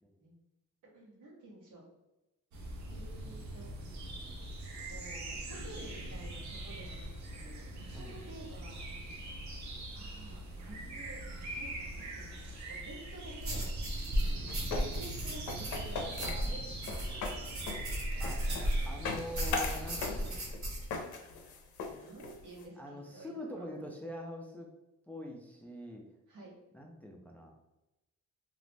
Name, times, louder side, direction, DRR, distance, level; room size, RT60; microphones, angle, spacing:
voice 1, 0.9-1.8 2.9-4.1 4.9-8.9 9.3-9.5 9.9-11.3 11.5-13.7 14.9-17.7 21.8-23.7 26.3-26.6, right 2 dB, 85° right, -4 dB, 1.1 m, -51 dB
sound 1, 2.5-20.3, right 1 dB, 70° right, 0.6 m, -42 dB
sound 2, 13.4-18.9 19.3-20.9, equal, 45° right, 1.0 m, -35 dB
sound 3, 14.5-22.6, left 4 dB, 75° left, 0.6 m, -40 dB
voice 2, 18.8-20.5 22.8-24.7 25.1-26.1 26.7-27.6, equal, 5° left, 0 dB, 0.3 m, -44 dB
2.5 x 2.0 x 3.2 m, 0.99 s
cardioid pair, 90°, 30 cm